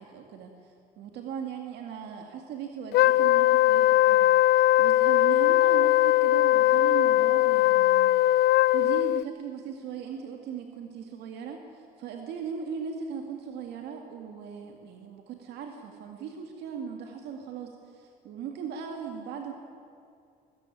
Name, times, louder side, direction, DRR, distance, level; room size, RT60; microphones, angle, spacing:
voice 1, 0.0-8.1 8.7-19.5, right 7 dB, 80° right, 3 dB, 2.1 m, -38 dB
Wind instrument woodwind instrument, 2.9-9.2, left 15 dB, 80° left, 0.4 m, -20 dB
21.0 x 14.5 x 9.9 m, 2.4 s
cardioid pair, 110°, 17 cm